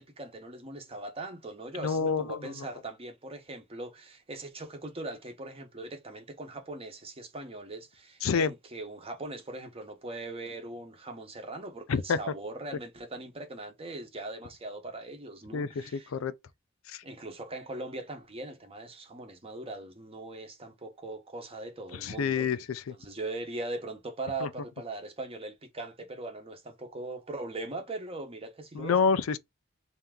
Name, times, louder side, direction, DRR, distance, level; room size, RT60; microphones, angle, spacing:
voice 1, 0.0-16.1 17.0-22.5 23.0-28.9, right 2 dB, 30° right, 0.9 m, -40 dB
voice 2, 1.8-2.7 8.2-8.5 11.9-12.2 15.5-16.3 16.9-17.0 21.9-22.9 24.4-24.5 28.7-29.4, left 5 dB, 85° left, 0.4 m, -28 dB
3.4 x 2.8 x 3.6 m
head